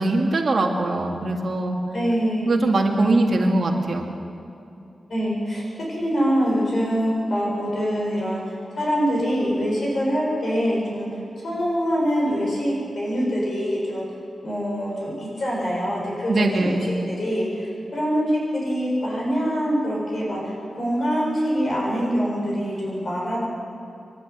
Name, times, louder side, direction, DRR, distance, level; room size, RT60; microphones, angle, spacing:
voice 1, 0.0-1.8 2.5-4.1 16.3-16.9, right 2 dB, 45° right, 1 dB, 2.6 m, -22 dB
voice 2, 1.9-2.6 3.0-3.2 5.1-11.1 11.4-14.0 14.4-23.4, equal, 50° left, -4 dB, 7.5 m, -24 dB
27.0 x 12.0 x 9.8 m, 2.6 s
wide cardioid pair, 175°, 0 cm